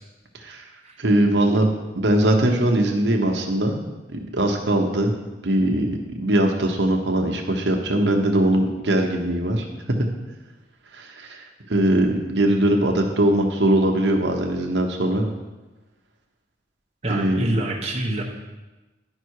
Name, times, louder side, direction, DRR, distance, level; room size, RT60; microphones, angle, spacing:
voice 1, 1.0-3.8 4.1-5.2 5.4-9.7 10.9-15.3 17.1-17.5, right 1 dB, 75° right, 2 dB, 1.0 m, -21 dB
voice 2, 17.0-18.2, right 1 dB, 35° right, -1 dB, 1.1 m, -26 dB
11.0 x 5.5 x 4.7 m, 1.1 s
head